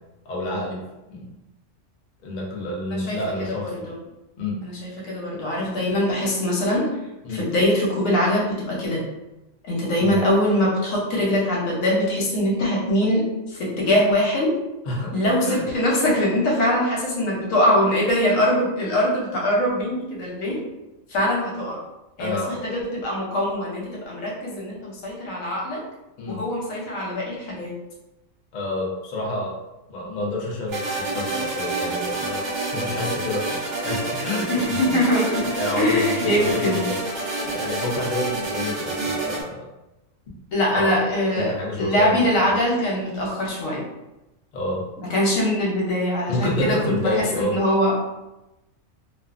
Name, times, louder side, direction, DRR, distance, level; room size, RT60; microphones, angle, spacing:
voice 1, 0.2-1.3 2.2-3.9 4.4-4.6 7.2-7.4 10.0-10.2 14.8-15.1 15.4-15.7 22.2-22.7 26.2-26.4 28.5-29.6 29.9-35.0 35.6-37.0 37.4-39.7 40.7-41.1 41.4-42.2 42.5-42.6 44.5-44.9 46.3-47.6, left 1 dB, 50° left, -3 dB, 0.5 m, -29 dB
voice 2, 3.5-3.9 4.6-7.0 7.3-9.1 9.6-14.6 15.1-20.6 21.1-21.8 22.2-25.8 26.3-27.7 34.5-35.5 35.8-36.8 40.5-43.8 45.1-47.9, left 1 dB, 85° left, -3 dB, 1.1 m, -22 dB
sound 1, 30.7-39.4, right 2 dB, 65° right, 1.1 m, -28 dB
2.4 x 2.4 x 2.4 m, 0.97 s
omnidirectional pair, 1.4 m